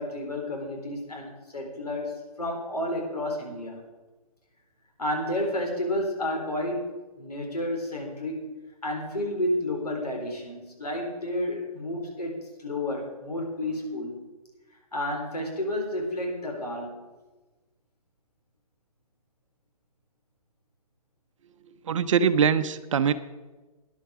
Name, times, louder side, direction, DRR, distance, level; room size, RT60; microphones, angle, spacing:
voice 1, 0.0-3.8 5.0-8.5 8.8-14.2 14.9-17.0, left 1 dB, 85° left, 1 dB, 4.1 m, -31 dB
voice 2, 21.8-23.1, right 7 dB, 55° right, 12 dB, 0.7 m, -22 dB
12.5 x 10.5 x 5.0 m, 1.2 s
figure-of-eight pair, 135°, 19 cm